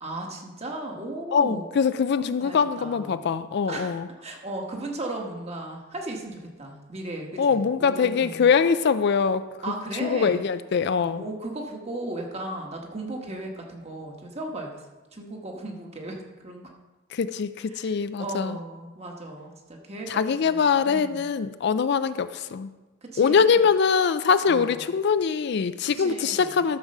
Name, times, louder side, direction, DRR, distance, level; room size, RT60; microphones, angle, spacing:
voice 1, 0.0-1.7 2.2-3.2 3.7-4.0 4.2-8.5 9.6-10.4 11.1-14.8 15.1-16.6 17.7-17.9 18.2-21.2 23.0-23.6 24.4-24.8 26.0-26.6, right 2 dB, 30° right, 1 dB, 1.4 m, -36 dB
voice 2, 1.3-4.1 7.4-9.4 9.9-11.2 17.1-18.6 20.1-22.7 23.2-26.8, left 6 dB, 55° left, 13 dB, 0.4 m, -23 dB
12.5 x 4.7 x 6.6 m, 1.2 s
head